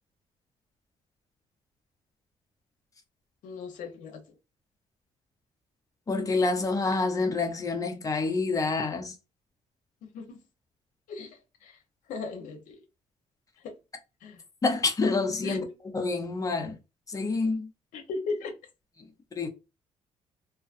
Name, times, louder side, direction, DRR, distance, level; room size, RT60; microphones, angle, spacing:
voice 1, 3.4-4.2 10.0-10.4 11.1-11.8 12.1-12.8 13.6-13.7 14.2-14.4 15.4-15.6 17.9-18.5, left 4 dB, 80° left, 0.7 m, -37 dB
voice 2, 6.1-9.1 14.6-15.7 15.9-16.8 17.1-17.7 19.4-19.5, left 3 dB, 25° left, 0.7 m, -27 dB
2.5 x 2.4 x 2.4 m
cardioid pair, 80°, 13 cm